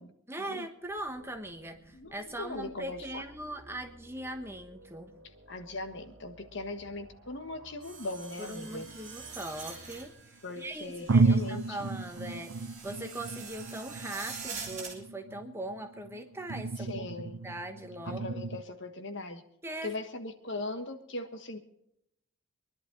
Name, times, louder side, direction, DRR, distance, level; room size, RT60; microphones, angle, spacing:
voice 1, 0.3-5.1 8.4-18.4 19.6-19.9, right 1 dB, 10° right, 5 dB, 1.2 m, -40 dB
sound 1, 0.8-10.1, right 1 dB, 50° right, 1.9 m, -56 dB
voice 2, 1.9-3.2 5.5-8.8 10.4-11.9 16.8-17.4 18.0-19.4 19.8-21.6, left 2 dB, 55° left, 7 dB, 1.4 m, -39 dB
sound 2, 7.8-15.0, right 5 dB, 35° right, 3.4 m, -45 dB
sound 3, 8.7-10.0 10.6-10.7 11.1-18.6, right 3 dB, 70° right, 0.5 m, -32 dB
23.5 x 11.5 x 4.0 m, 0.76 s
head